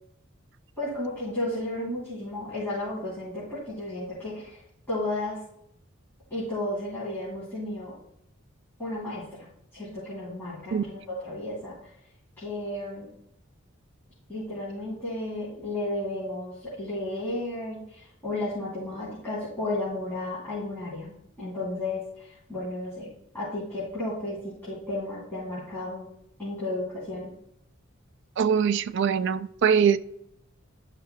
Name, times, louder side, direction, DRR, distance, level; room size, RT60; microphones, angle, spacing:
voice 1, 0.8-4.6 4.9-5.4 6.3-8.0 8.8-9.5 9.7-11.8 12.4-13.1 14.3-23.1 23.3-26.1 26.4-27.3, left 1 dB, 10° left, -11 dB, 3.1 m, -33 dB
voice 2, 28.4-30.0, right 7 dB, 60° right, 12 dB, 0.3 m, -22 dB
12.0 x 5.6 x 2.2 m, 0.75 s
head